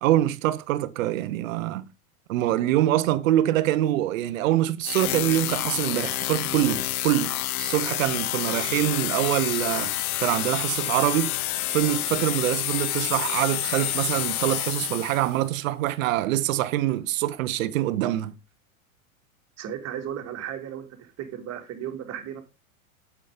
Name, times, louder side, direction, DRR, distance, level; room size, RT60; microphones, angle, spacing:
voice 1, 0.0-1.8 2.3-9.9 10.2-11.3 11.7-18.3, right 14 dB, 65° right, 1.2 m, -24 dB
sound 1, 4.8-15.4, left 15 dB, 90° left, 0.5 m, -29 dB
voice 2, 19.6-22.4, right 9 dB, 35° right, 2.8 m, -35 dB
9.0 x 7.5 x 5.1 m
hypercardioid pair, 110°, 42 cm